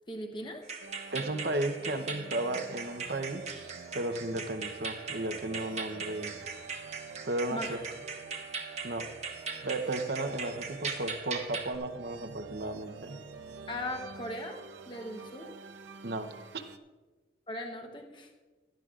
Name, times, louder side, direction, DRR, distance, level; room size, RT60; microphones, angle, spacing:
voice 1, 0.1-0.6 7.5-7.7 13.7-15.5 17.5-18.3, left 1 dB, 25° left, 3 dB, 1.0 m, -39 dB
sound 1, 0.6-11.8, right 5 dB, 40° right, 1.2 m, -40 dB
sound 2, 0.8-16.8, right 5 dB, 90° right, 0.8 m, -47 dB
voice 2, 1.1-3.5 3.9-6.3 7.2-7.8 8.8-9.1 9.6-13.2 16.0-16.6, right 2 dB, 60° right, 9 dB, 0.8 m, -34 dB
16.5 x 12.5 x 2.5 m, 1.2 s
head